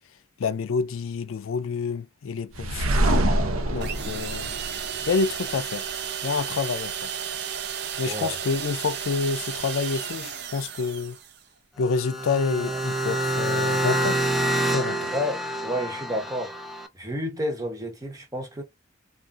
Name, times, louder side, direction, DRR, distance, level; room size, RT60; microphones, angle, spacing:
voice 1, 0.4-2.9 3.7-4.5 5.1-5.8 6.2-7.1 8.0-11.2 11.8-14.3 14.6-15.1, left 4 dB, 80° left, 0.4 m, -28 dB
sound 1, 2.5-5.5, right 1 dB, 90° right, 0.7 m, -25 dB
sound 2, 3.8-11.4, right 8 dB, 55° right, 0.5 m, -33 dB
sound 3, 11.8-16.9, right 1 dB, ahead, 0.4 m, -27 dB
voice 2, 15.1-16.6 16.9-18.6, equal, 15° right, 0.9 m, -30 dB
3.6 x 2.4 x 2.5 m
head